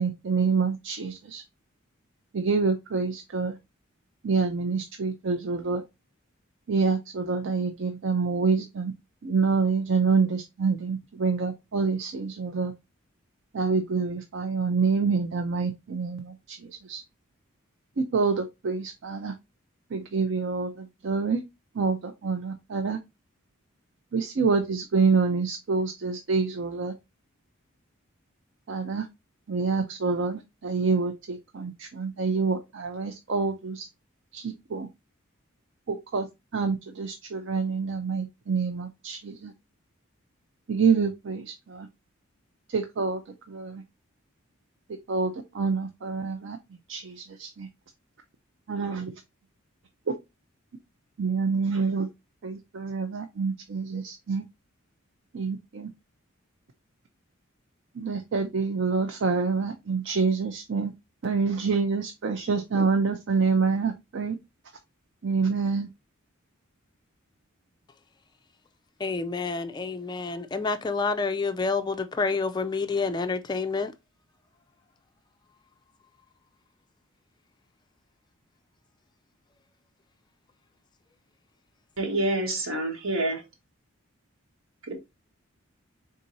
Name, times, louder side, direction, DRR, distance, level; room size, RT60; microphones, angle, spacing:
voice 1, 0.0-1.4 2.3-3.6 4.2-5.8 6.7-8.9 9.2-12.7 13.5-17.0 18.1-19.3 19.9-21.4 21.8-23.0 24.1-26.9 28.7-29.1 29.5-33.9 34.3-34.9 35.9-36.3 36.5-39.5 40.7-41.9 42.7-43.2 43.5-43.8 45.1-46.6 46.9-47.7 48.7-49.1 50.1-50.2 51.2-52.1 52.4-54.4 55.3-55.9 58.0-60.9 61.2-64.4 65.2-65.9, right 4 dB, 60° right, 0.5 m, -27 dB
voice 2, 69.0-73.9, left 4 dB, 20° left, 0.3 m, -28 dB
voice 3, 82.0-83.4 84.8-84.9, right 1 dB, 80° right, 1.4 m, -27 dB
4.2 x 3.6 x 2.6 m
head